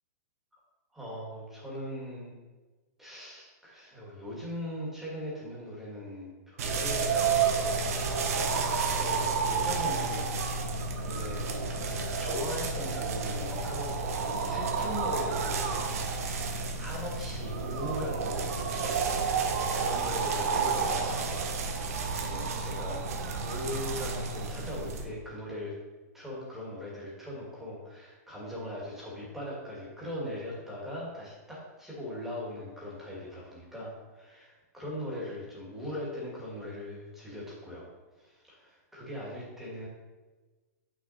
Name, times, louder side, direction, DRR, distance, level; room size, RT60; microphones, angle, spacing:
voice 1, 0.9-2.3 3.0-7.2 8.3-10.6 11.0-11.8 12.2-19.0 19.3-21.3 22.1-23.1 23.4-25.7 26.1-37.9 38.2-39.9, left 1 dB, 5° right, -5 dB, 2.0 m, -40 dB
sound 1, 6.6-25.1, right 5 dB, 60° right, 1.0 m, -30 dB
7.6 x 6.1 x 4.1 m, 1.3 s
hypercardioid pair, 170°, 9 cm